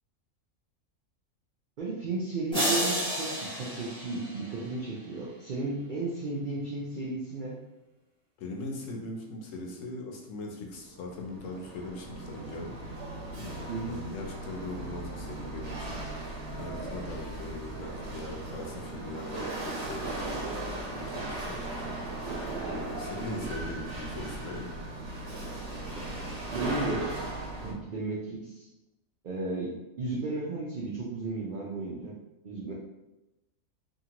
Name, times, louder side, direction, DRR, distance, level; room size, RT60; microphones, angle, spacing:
voice 1, 1.8-7.6 13.7-14.0 23.2-23.4 26.0-27.1 27.6-28.7 29.2-32.1 32.4-32.7, right 3 dB, 80° right, -4 dB, 0.4 m, -34 dB
sound 1, 2.5-4.9, equal, 5° left, 0.7 m, -31 dB
voice 2, 8.4-13.1 13.4-16.2 16.6-22.4 22.7-24.7, left 2 dB, 70° left, 1 dB, 1.0 m, -40 dB
Chatter / Hiss / Rattle, 10.8-27.7, right 2 dB, 55° right, 0.9 m, -37 dB
2.8 x 2.5 x 2.8 m, 0.97 s
omnidirectional pair, 1.4 m